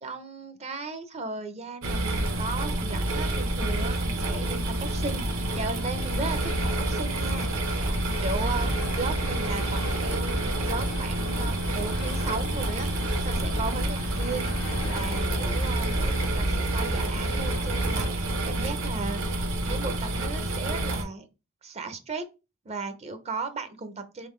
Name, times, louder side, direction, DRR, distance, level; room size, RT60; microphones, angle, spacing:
voice 1, 0.0-5.2 5.5-7.5 8.2-12.9 13.2-14.5 14.8-19.3 19.7-21.3 21.6-22.3 22.7-24.3, right 4 dB, 30° right, 9 dB, 0.5 m, -36 dB
sound 1, 1.8-21.0, right 1 dB, 65° right, 0.9 m, -28 dB
sound 2, 2.2-18.1, left 1 dB, 85° left, 1.0 m, -37 dB
3.8 x 3.6 x 3.1 m, 0.29 s
head